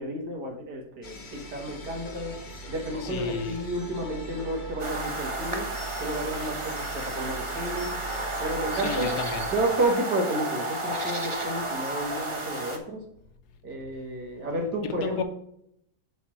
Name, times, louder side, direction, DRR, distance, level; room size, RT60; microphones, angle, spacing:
voice 1, 0.0-2.3 2.7-5.7 6.0-8.0 8.4-9.1 9.5-13.0 13.6-15.2, right 1 dB, 85° right, 2.1 m, -31 dB
sound 1, 1.0-9.7, right 2 dB, 35° left, 0.9 m, -41 dB
sound 2, 1.3-12.6, left 1 dB, 70° right, 1.6 m, -45 dB
voice 2, 3.0-3.6 8.8-9.5 15.0-15.2, left 5 dB, 75° left, 1.4 m, -32 dB
sound 3, 4.8-12.8, right 2 dB, 25° right, 0.9 m, -32 dB
9.0 x 3.3 x 6.1 m
omnidirectional pair, 1.7 m